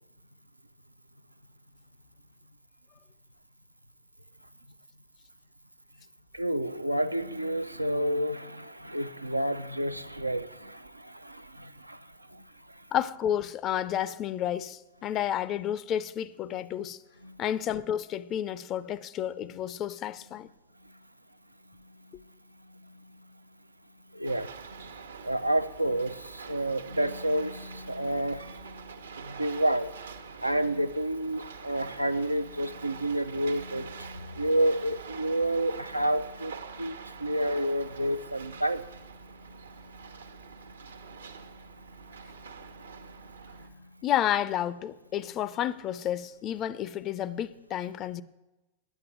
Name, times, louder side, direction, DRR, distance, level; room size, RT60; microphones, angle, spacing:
voice 1, 6.3-12.4 12.7-12.8 17.2-17.3 24.1-24.8 25.2-28.9 29.2-29.9 30.4-38.9 42.2-42.3, right 1 dB, 85° right, 0.5 m, -30 dB
voice 2, 12.9-17.0 17.4-20.5 44.0-48.2, left 10 dB, 35° left, 0.5 m, -31 dB
sound 1, 24.2-43.7, right 6 dB, 70° right, 1.0 m, -46 dB
9.1 x 9.0 x 9.0 m
figure-of-eight pair, 90°, 0 cm